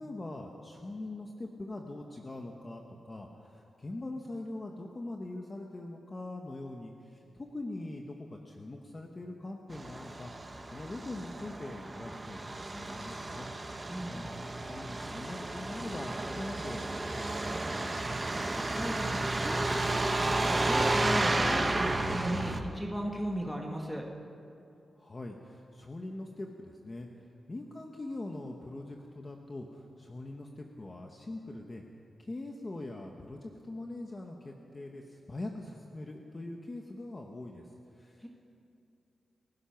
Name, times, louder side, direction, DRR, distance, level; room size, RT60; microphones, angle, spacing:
voice 1, 0.0-10.3 10.6-13.8 14.1-17.9 25.0-27.1 27.5-31.8 32.2-38.3, left 2 dB, 25° left, 2 dB, 1.2 m, -42 dB
Truck, 9.7-22.6, right 2 dB, 20° right, 1.2 m, -32 dB
voice 2, 18.7-24.0 38.2-38.3, equal, ahead, -1 dB, 1.7 m, -36 dB
30.0 x 16.5 x 5.9 m, 2.7 s
wide cardioid pair, 180°, 0 cm